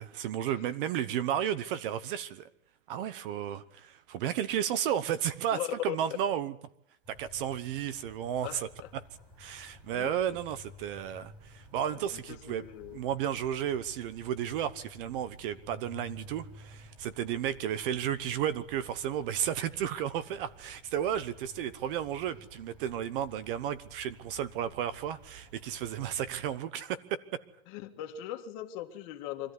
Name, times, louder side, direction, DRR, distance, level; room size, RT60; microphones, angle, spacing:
voice 1, 0.0-2.5 2.9-6.5 7.1-8.7 9.4-12.6 12.9-27.2, right 10 dB, 40° right, 16 dB, 1.1 m, -33 dB
voice 2, 5.5-5.9 8.4-8.9 9.9-10.4 11.9-13.0 27.7-29.5, left 12 dB, 35° left, 4 dB, 2.0 m, -39 dB
sound 1, 7.0-26.6, equal, 10° right, 4.0 m, -54 dB
25.0 x 14.5 x 9.6 m, 0.78 s
supercardioid pair, 165°, 39 cm